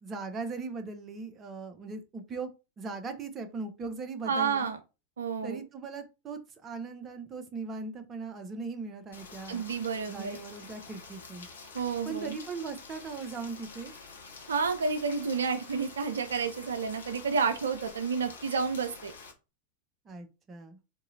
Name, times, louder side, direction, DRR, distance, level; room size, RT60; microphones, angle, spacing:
voice 1, 0.0-2.5 2.8-4.7 5.4-9.7 10.1-11.5 12.0-13.9 20.0-20.8, right 4 dB, 25° right, 7 dB, 0.6 m, -39 dB
voice 2, 4.2-4.8 5.2-5.6 9.5-10.4 11.7-12.4 14.5-19.1, right 5 dB, 70° right, 8 dB, 0.4 m, -30 dB
Rain, 9.1-19.3, left 4 dB, 65° left, 0.8 m, -48 dB
3.8 x 2.7 x 2.7 m, 0.29 s
figure-of-eight pair, 90°, 0 cm